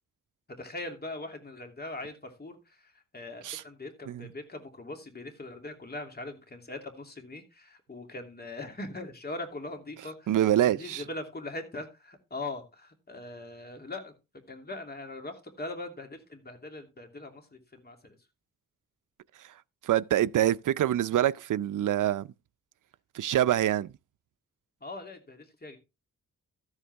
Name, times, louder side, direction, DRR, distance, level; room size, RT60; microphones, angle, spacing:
voice 1, 0.5-2.6 3.1-10.4 10.7-14.1 14.5-18.2 24.8-25.8, left 2 dB, 30° left, 2.8 m, -41 dB
voice 2, 10.3-11.0 19.4-19.5 19.8-22.3 23.1-23.9, right 12 dB, 80° right, 0.5 m, -25 dB
13.5 x 8.2 x 3.4 m
cardioid pair, 90°, 31 cm